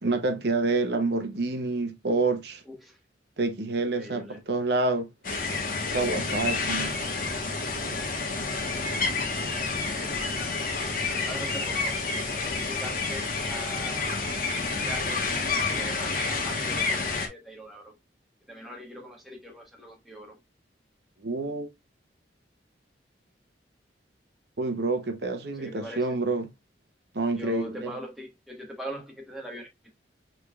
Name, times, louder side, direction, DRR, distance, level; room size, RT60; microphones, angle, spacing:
voice 1, 0.0-2.6 3.4-5.1 5.9-7.0 21.2-21.7 24.6-26.4 27.1-27.7, right 3 dB, 65° right, 0.8 m, -27 dB
voice 2, 2.6-3.0 3.9-4.4 8.2-9.1 9.8-10.1 10.8-12.0 12.3-14.4 14.8-15.3 15.6-17.9 18.5-20.4 25.5-26.2 27.4-29.9, equal, ahead, 1.2 m, -42 dB
sound 1, 5.2-17.3, left 3 dB, 45° left, 1.0 m, -29 dB
6.4 x 3.3 x 2.3 m
head